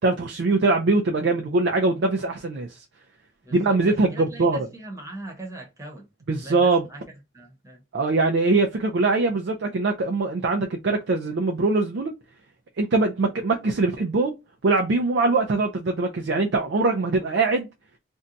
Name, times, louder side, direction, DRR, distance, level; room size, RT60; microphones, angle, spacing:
voice 1, 0.0-2.7 3.5-4.7 6.3-6.9 7.9-12.1 12.8-14.3 14.6-17.7, right 3 dB, 85° right, 0.4 m, -22 dB
voice 2, 3.4-6.1 6.4-7.8, right 2 dB, 20° right, 0.9 m, -41 dB
2.6 x 2.2 x 3.8 m
head